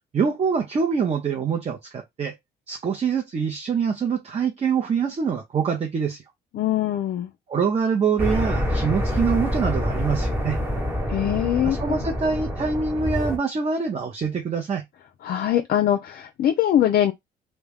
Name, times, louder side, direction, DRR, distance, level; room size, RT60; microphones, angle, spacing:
voice 1, 0.1-2.3 2.7-6.2 7.5-10.6 11.6-14.8, right 6 dB, 35° right, 0.6 m, -25 dB
voice 2, 6.5-7.3 11.1-12.0 15.2-17.1, left 11 dB, 55° left, 0.4 m, -22 dB
sound 1, 8.2-13.4, equal, 10° right, 0.9 m, -26 dB
2.2 x 2.1 x 3.3 m
supercardioid pair, 65°, 19 cm